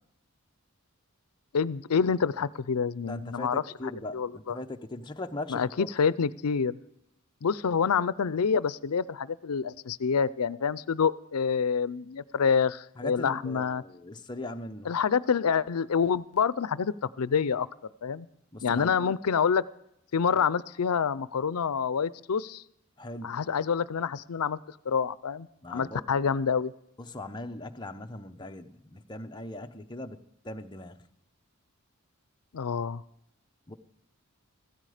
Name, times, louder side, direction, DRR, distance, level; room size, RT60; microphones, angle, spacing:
voice 1, 1.5-3.6 4.1-4.6 5.5-6.8 7.4-13.8 14.9-17.7 18.0-18.3 18.6-19.6 20.1-22.6 23.2-24.6 24.9-26.7 32.5-33.0, left 6 dB, 90° left, 18 dB, 0.5 m, -27 dB
voice 2, 3.0-5.9 13.0-14.9 18.5-19.1 20.3-20.5 23.0-23.4 25.6-26.0 27.0-30.2 30.4-31.1 33.7-33.8, left 1 dB, 20° left, 5 dB, 0.8 m, -39 dB
15.5 x 13.5 x 5.0 m, 0.79 s
head